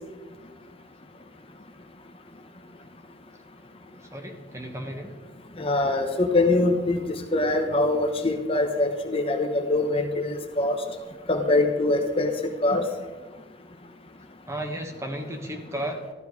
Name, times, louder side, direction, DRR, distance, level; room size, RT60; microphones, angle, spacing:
voice 1, 4.1-5.1 14.5-16.0, right 1 dB, 15° right, 3 dB, 1.5 m, -34 dB
voice 2, 5.6-7.0 7.3-10.8 11.3-12.3 12.6-12.8, left 2 dB, 30° left, 4 dB, 1.1 m, -23 dB
14.0 x 12.5 x 4.8 m, 1.3 s
head